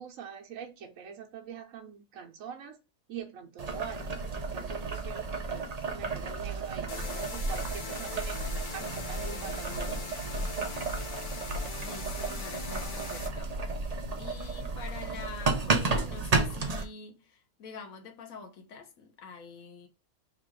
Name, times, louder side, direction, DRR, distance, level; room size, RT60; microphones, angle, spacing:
voice 1, 0.0-2.8 3.1-10.0, right 7 dB, 75° right, 1.2 m, -44 dB
Boiling, 3.6-16.8, right 3 dB, 40° right, 0.6 m, -33 dB
sound 1, 6.9-13.3, left 4 dB, 45° left, 0.8 m, -41 dB
voice 2, 11.8-19.9, left 4 dB, 80° left, 1.3 m, -46 dB
3.6 x 2.5 x 4.6 m
omnidirectional pair, 1.4 m